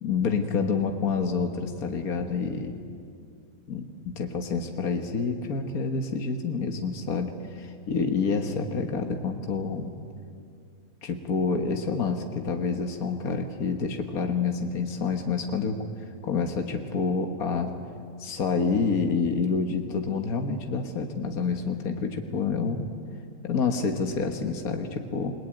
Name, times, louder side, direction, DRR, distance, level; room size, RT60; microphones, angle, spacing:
voice 1, 0.0-2.7 3.7-9.9 11.0-15.8 16.2-17.7 18.2-22.9 23.4-25.3, left 5 dB, 70° left, 4 dB, 1.9 m, -28 dB
28.5 x 21.0 x 9.1 m, 2.4 s
omnidirectional pair, 1.6 m